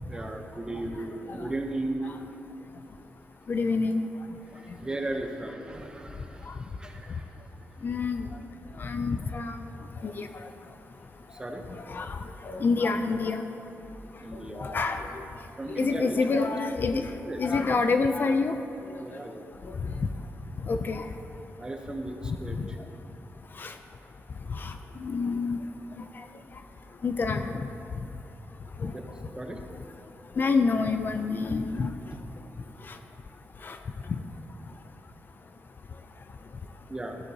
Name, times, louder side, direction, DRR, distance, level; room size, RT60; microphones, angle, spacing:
voice 1, 0.0-2.1 4.5-7.3 11.4-11.7 14.2-15.2 15.6-16.1 16.9-17.4 19.0-19.5 21.6-22.8 28.9-29.1 29.4-29.6 32.1-32.2 36.9-37.2, right 2 dB, 15° right, 3 dB, 0.8 m, -36 dB
voice 2, 3.5-4.0 7.8-8.3 8.8-9.6 10.0-10.3 11.9-12.2 12.5-13.4 14.6-15.1 15.8-17.0 17.4-18.5 20.7-21.0 23.6-23.7 24.6-24.7 25.0-25.6 27.0-27.4 28.8-28.9 30.4-31.9 33.6-33.8, left 4 dB, 40° left, 7 dB, 0.4 m, -27 dB
15.0 x 8.1 x 2.8 m, 2.8 s
wide cardioid pair, 150°, 5 cm